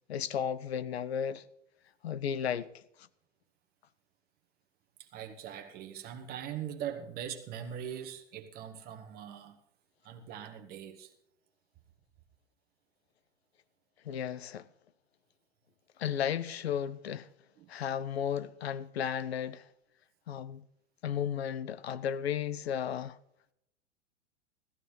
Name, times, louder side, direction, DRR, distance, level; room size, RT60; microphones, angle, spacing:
voice 1, 0.1-1.4 2.0-2.8 14.0-14.7 16.0-17.3 17.7-19.6 20.3-20.6 21.0-23.2, left 8 dB, 60° left, 0.7 m, -34 dB
voice 2, 5.0-9.6 10.0-11.1 17.6-17.7, right 9 dB, 25° right, 1.2 m, -41 dB
16.5 x 14.5 x 3.2 m
figure-of-eight pair, 100°, 36 cm